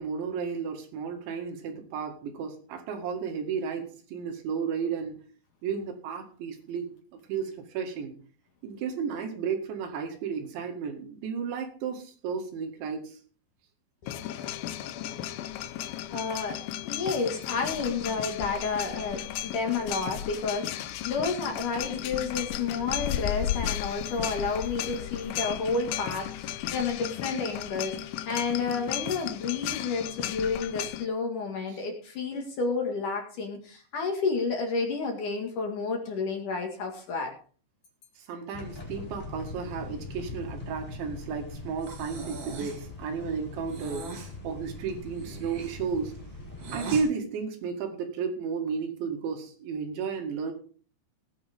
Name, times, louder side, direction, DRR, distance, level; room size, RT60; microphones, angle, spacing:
voice 1, 0.0-5.2 5.6-6.9 7.3-8.1 8.6-13.2 31.7-31.8 38.2-44.1 44.4-46.2 46.7-50.5, right 6 dB, 75° right, 4 dB, 4.3 m, -33 dB
sound 1, 14.1-31.1, left 12 dB, 85° left, 2.1 m, -34 dB
voice 2, 16.1-37.3, left 4 dB, 55° left, 2 dB, 3.0 m, -31 dB
sound 2, 38.5-47.0, left 3 dB, 15° left, 4.5 m, -42 dB
Breathing, 41.8-42.9 43.7-44.3 45.1-47.1, right 3 dB, 50° right, 3.3 m, -41 dB
18.5 x 9.8 x 3.6 m, 0.42 s
omnidirectional pair, 5.3 m